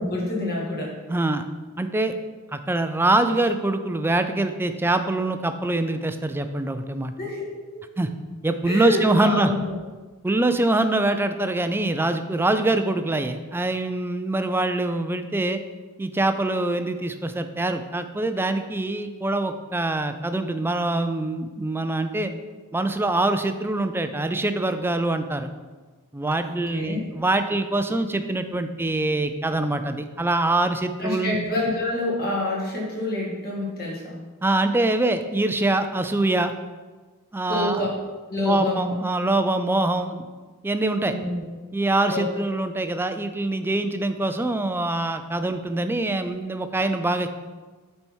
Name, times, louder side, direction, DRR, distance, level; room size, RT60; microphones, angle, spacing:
voice 1, 0.0-1.0 7.2-7.4 7.7-7.9 8.7-9.8 26.4-27.0 31.0-34.2 37.5-37.9 38.3-39.0 41.0-41.4 42.1-42.3, left 2 dB, 45° left, -4 dB, 2.2 m, -27 dB
voice 2, 1.1-1.4 1.8-2.1 2.5-7.1 8.0-8.1 8.4-9.5 10.2-15.6 16.0-22.3 22.7-25.5 26.1-31.4 34.4-36.5 37.3-37.8 38.5-40.2 40.6-41.1 41.7-47.3, right 2 dB, 10° right, 9 dB, 0.4 m, -24 dB
8.7 x 4.5 x 4.5 m, 1.3 s
head